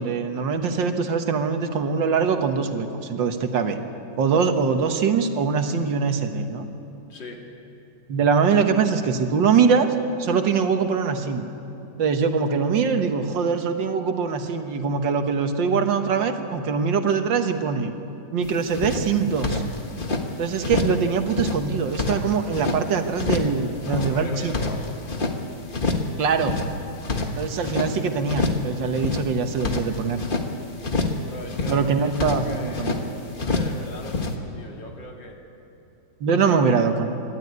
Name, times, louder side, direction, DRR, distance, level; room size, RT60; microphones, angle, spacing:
voice 1, 0.0-3.8 4.2-6.7 8.1-11.4 12.0-17.9 18.3-19.6 20.4-24.5 26.2-26.6 27.4-30.2 31.7-33.1 36.2-37.1, right 5 dB, 90° right, 6 dB, 2.0 m, -23 dB
voice 2, 7.1-7.4 23.9-25.0 31.3-33.0 33.4-35.4 36.4-36.6, left 1 dB, 80° left, 1 dB, 3.1 m, -39 dB
sound 1, 18.4-18.5 18.7-20.2 20.6-21.0 21.3-22.8 23.2-23.6 23.8-25.4 25.7-26.1 26.4-27.9 28.3-28.7 28.9-30.5 30.8-31.2 31.5-33.0 33.4-33.8 34.0-34.3, left 3 dB, 30° left, 1.5 m, -26 dB
27.0 x 12.5 x 9.5 m, 2.9 s
omnidirectional pair, 2.0 m